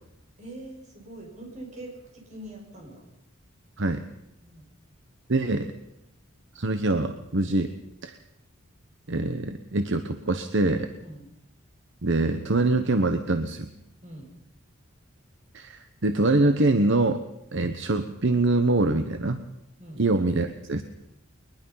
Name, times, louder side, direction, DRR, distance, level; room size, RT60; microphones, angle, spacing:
voice 1, 0.4-3.0 4.4-4.6 11.0-11.2 14.0-14.3 19.8-20.0, right 1 dB, 35° right, 0 dB, 6.6 m, -43 dB
voice 2, 5.3-5.7 6.5-7.7 8.0-8.2 9.1-10.9 12.0-13.7 15.5-17.2 17.5-19.4 20.0-20.8, right 2 dB, 60° right, 8 dB, 1.1 m, -24 dB
22.0 x 20.5 x 5.7 m, 0.84 s
head